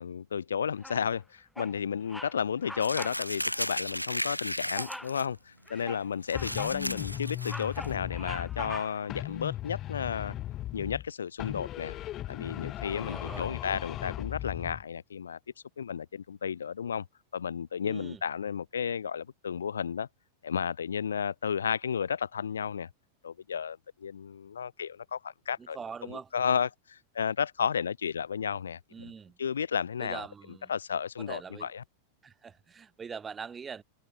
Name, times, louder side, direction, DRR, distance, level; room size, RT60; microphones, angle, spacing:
voice 1, 0.0-10.3 10.7-12.0 12.3-15.4 15.8-17.1 17.3-20.1 20.4-22.9 23.2-25.8 26.1-29.1 29.4-30.3 30.7-31.8, left 7 dB, 70° left, 2.3 m, -33 dB
Bird vocalization bird call bird song, 0.8-1.2 1.6-1.8 2.1-2.4 2.6-3.2 3.5-3.7 4.8-5.2 5.7-6.8 7.2-9.1, left 1 dB, 5° left, 1.7 m, -43 dB
Crumpling crinkling, 2.8-5.3 5.7-5.8 6.2-7.9, equal, 90° left, 2.4 m, -35 dB
sound 1, 6.3-8.8 9.1-11.1 11.4-14.8, left 13 dB, 35° left, 1.0 m, -38 dB
voice 2, 13.0-13.5 17.8-18.2 25.6-26.3 28.9-29.4 30.0-30.7 31.2-31.7 32.2-33.8, right 6 dB, 20° right, 2.8 m, -43 dB
figure-of-eight pair, 90°, 0 cm